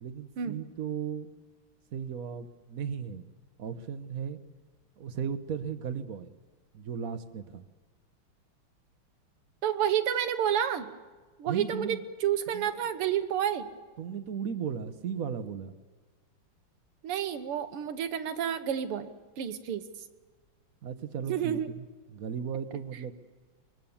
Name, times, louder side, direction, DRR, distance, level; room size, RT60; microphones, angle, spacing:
voice 1, 0.0-1.3 1.9-3.3 3.6-4.4 5.0-6.3 6.7-7.6 11.5-12.0 12.5-12.7 14.0-15.7 20.8-21.9 22.1-23.1, right 7 dB, 50° right, 11 dB, 1.1 m, -36 dB
voice 2, 9.6-10.9 11.4-13.7 17.0-19.8 21.3-21.7, right 9 dB, 85° right, 10 dB, 2.0 m, -30 dB
24.0 x 21.0 x 7.2 m, 1.4 s
omnidirectional pair, 2.4 m